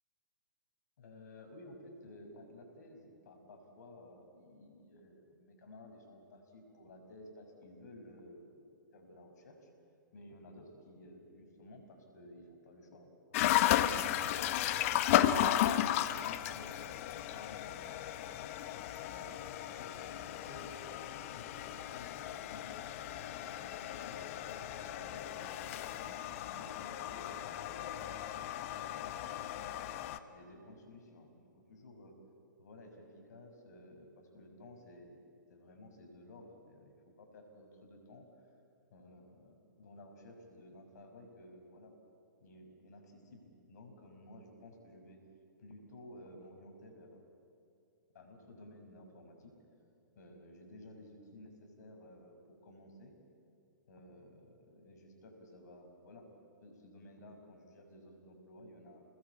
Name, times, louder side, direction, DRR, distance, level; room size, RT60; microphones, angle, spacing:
voice 1, 1.0-8.7 8.9-9.7 10.1-14.6 14.9-18.5 19.1-26.0 26.4-28.5 28.7-29.8 30.3-32.1 32.6-35.2 35.5-38.3 38.9-41.9 42.4-45.2 45.6-47.2 48.1-49.6 50.1-53.1 53.9-56.3 56.6-59.0, left 1 dB, 60° left, 4 dB, 6.3 m, -54 dB
sound 1, 13.3-30.2, left 12 dB, 45° left, 1.2 m, -34 dB
29.0 x 20.5 x 8.5 m, 2.6 s
figure-of-eight pair, 120°, 10 cm